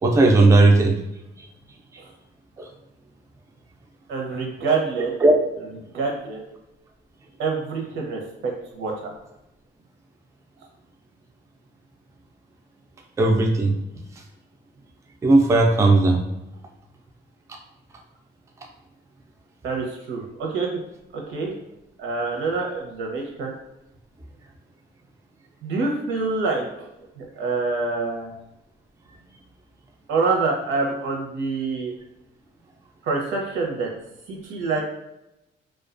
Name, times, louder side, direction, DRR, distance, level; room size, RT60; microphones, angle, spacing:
voice 1, 0.0-1.0 2.6-2.7 5.2-5.3 13.2-13.7 15.2-16.2, right 2 dB, 15° right, 2 dB, 0.3 m, -16 dB
voice 2, 4.1-5.1 5.9-6.4 7.4-9.1 19.6-20.7 21.1-21.5 22.0-23.5 25.6-26.7 27.2-28.3 30.1-31.9 33.0-33.9 34.3-34.8, right 4 dB, 80° right, -1 dB, 0.7 m, -26 dB
2.3 x 2.2 x 2.4 m, 0.89 s
cardioid pair, 90°, 20 cm